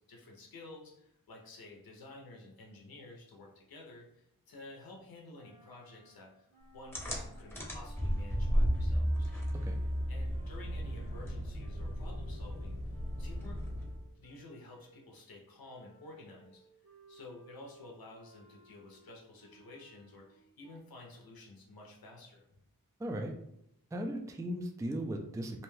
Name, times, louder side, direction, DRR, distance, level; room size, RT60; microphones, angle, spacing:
voice 1, 0.1-6.5 6.7-9.3 10.1-12.8 13.2-13.6 14.1-16.6 17.1-22.6, left 2 dB, 85° left, -1 dB, 0.6 m, -52 dB
sound 1, 5.3-15.1 15.6-20.8, right 2 dB, 75° right, 1.2 m, -61 dB
sound 2, 6.9-14.1, equal, 5° left, 0.8 m, -34 dB
voice 2, 23.0-23.3 23.9-25.6, right 1 dB, 10° right, 3 dB, 0.3 m, -37 dB
2.7 x 2.2 x 3.1 m, 0.76 s
wide cardioid pair, 50°, 35 cm